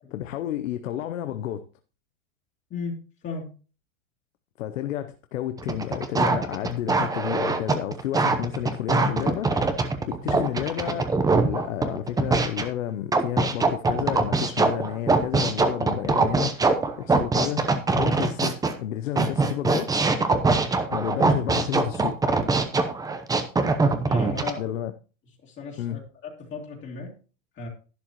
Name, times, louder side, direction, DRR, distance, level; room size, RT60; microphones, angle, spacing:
voice 1, 0.1-1.6 4.6-9.5 10.1-17.7 17.9-19.9 20.9-22.2 24.6-24.9 25.8-26.0, left 12 dB, 90° left, 0.8 m, -31 dB
sound 1, 5.6-12.7 13.1-18.7 19.2-24.5, right 3 dB, 10° right, 0.7 m, -23 dB
voice 2, 24.1-24.6 25.4-27.1 27.6-27.7, left 4 dB, 30° left, 2.4 m, -35 dB
11.5 x 10.0 x 3.0 m
supercardioid pair, 130°, 38 cm